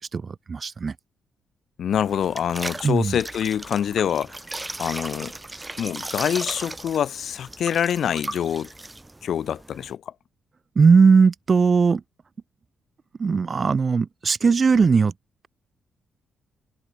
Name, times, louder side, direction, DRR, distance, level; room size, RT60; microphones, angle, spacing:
voice 1, 0.1-0.9 2.8-3.2 10.7-12.0 13.2-15.1, right 5 dB, 45° right, 5.0 m, -18 dB
voice 2, 1.8-4.4 4.8-5.3 5.8-8.7 9.2-10.1, left 9 dB, 65° left, 6.4 m, -25 dB
sound 1, 1.9-9.9, right 2 dB, 20° right, 7.2 m, -37 dB
hypercardioid pair, 45°, 0 cm